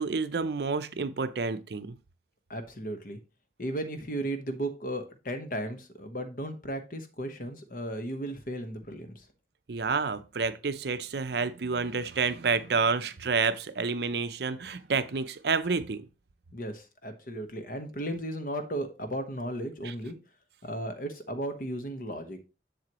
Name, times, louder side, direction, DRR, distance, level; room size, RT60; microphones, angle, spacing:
voice 1, 0.0-2.0 9.7-16.0 19.8-19.9, right 4 dB, 60° right, 0.6 m, -29 dB
voice 2, 2.5-3.2 3.6-9.3 16.5-20.2 20.6-22.4, right 1 dB, 50° left, 1.1 m, -35 dB
7.7 x 6.8 x 3.0 m
head